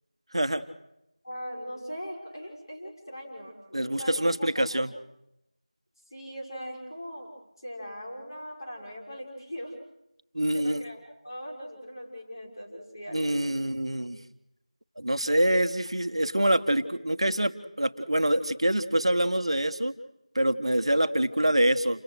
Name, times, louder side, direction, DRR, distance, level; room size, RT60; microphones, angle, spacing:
voice 1, 0.3-0.6 3.7-4.9 10.3-10.8 13.1-14.2 15.0-19.9 20.3-22.0, right 1 dB, 50° right, 9 dB, 1.5 m, -25 dB
voice 2, 1.2-4.8 6.1-7.3 7.6-9.7 10.5-13.6 21.3-21.8, equal, 35° left, -1 dB, 5.9 m, -40 dB
29.0 x 17.5 x 6.5 m, 0.85 s
figure-of-eight pair, 175°, 4 cm